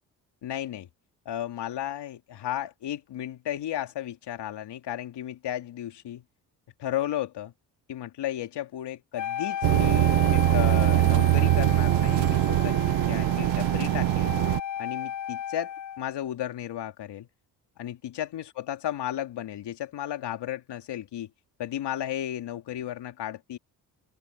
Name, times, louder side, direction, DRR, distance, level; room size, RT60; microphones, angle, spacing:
voice 1, 0.4-0.9 1.2-6.2 6.8-7.5 7.9-14.3 14.8-17.3 17.8-21.3 21.6-23.6, left 11 dB, 65° left, 2.9 m, -34 dB
Wind instrument woodwind instrument, 9.2-16.1, left 10 dB, 40° left, 0.9 m, -34 dB
sound 1, 9.6-14.6, right 20 dB, 75° right, 0.7 m, -22 dB
supercardioid pair, 65°, 43 cm